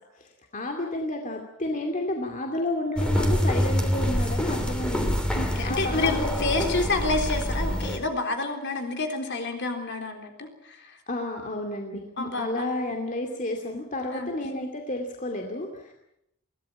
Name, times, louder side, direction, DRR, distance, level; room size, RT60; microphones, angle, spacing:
voice 1, 0.2-5.2 5.6-6.7 11.1-15.9, left 1 dB, 35° left, 3 dB, 2.5 m, -31 dB
sound 1, 3.0-8.0, equal, 5° left, 2.9 m, -26 dB
voice 2, 5.3-11.0 12.2-12.6 14.1-14.3, left 3 dB, 55° left, 5 dB, 3.8 m, -29 dB
23.0 x 17.0 x 8.8 m, 0.80 s
head